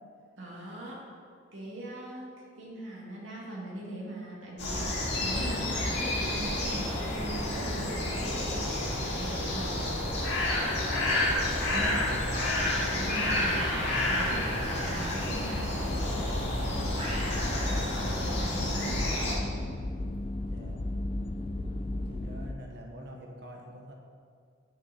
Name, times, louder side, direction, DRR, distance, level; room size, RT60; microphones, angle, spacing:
voice 1, 0.4-1.0 1.5-9.8 11.7-11.9 12.9-19.5, right 1 dB, 70° right, -5 dB, 2.3 m, -41 dB
sound 1, 4.6-19.4, left 1 dB, 55° left, 1.9 m, -30 dB
voice 2, 10.3-10.9 11.6-12.2 20.5-20.8 21.9-23.9, equal, 55° right, 1 dB, 0.9 m, -46 dB
sound 2, 13.4-15.2 17.0-17.8, equal, 30° right, 2.0 m, -38 dB
sound 3, 15.5-22.5, left 1 dB, 30° left, 0.4 m, -34 dB
9.0 x 6.2 x 4.2 m, 2.1 s
head